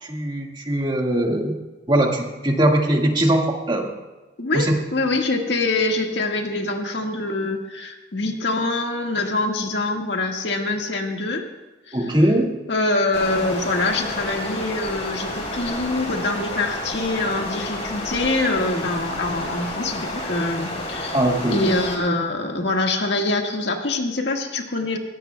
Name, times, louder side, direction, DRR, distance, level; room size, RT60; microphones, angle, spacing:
voice 1, 0.0-1.6 1.9-4.0 4.5-4.8 11.9-12.5 21.1-21.6, right 1 dB, 25° right, 0 dB, 1.8 m, -20 dB
voice 2, 4.4-11.5 11.9-12.0 12.7-21.2 21.5-25.0, left 2 dB, 80° left, 2 dB, 1.7 m, -24 dB
Stream, 13.1-22.0, left 1 dB, 40° left, 3.4 m, -31 dB
21.5 x 17.0 x 2.3 m, 1.2 s
head